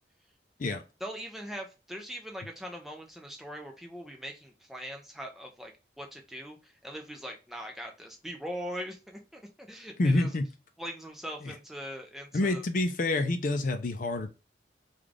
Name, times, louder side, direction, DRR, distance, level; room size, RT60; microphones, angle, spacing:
voice 1, 1.0-5.7 6.0-10.3 10.8-12.6, equal, ahead, 0.5 m, -41 dB
voice 2, 10.0-10.4 11.4-11.5 12.3-14.3, left 2 dB, 50° left, 0.5 m, -27 dB
3.2 x 2.4 x 3.7 m
head